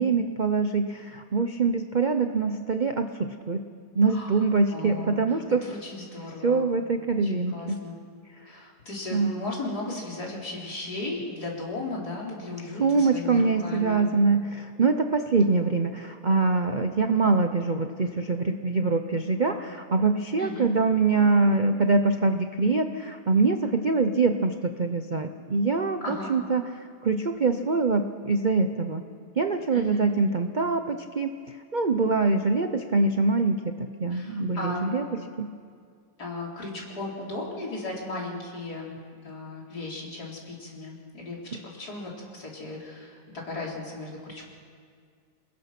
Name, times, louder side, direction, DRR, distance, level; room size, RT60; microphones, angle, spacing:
voice 1, 0.0-3.6 3.9-5.6 6.4-7.8 9.1-9.3 12.8-29.0 29.4-35.0 35.4-35.5, right 3 dB, 45° right, 7 dB, 0.6 m, -24 dB
voice 2, 4.0-4.4 4.7-6.7 7.2-7.9 8.4-14.0 20.4-20.7 26.0-26.3 29.7-30.1 34.1-34.9 36.2-44.4, left 2 dB, 65° left, -3 dB, 4.7 m, -36 dB
28.0 x 20.5 x 6.0 m, 2.1 s
omnidirectional pair, 1.8 m